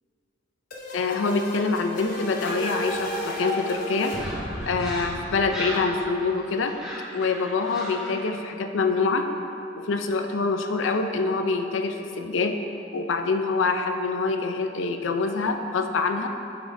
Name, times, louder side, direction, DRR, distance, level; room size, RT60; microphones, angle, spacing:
sound 1, 0.7-6.4, left 1 dB, 45° left, 0.9 m, -33 dB
voice 1, 0.9-4.1 4.7-6.8 7.1-9.3 9.8-12.6 12.9-16.3, left 4 dB, 70° left, 6 dB, 0.5 m, -25 dB
sound 2, 3.0-8.3, equal, 5° right, 1.1 m, -38 dB
9.2 x 5.9 x 2.6 m, 2.9 s
head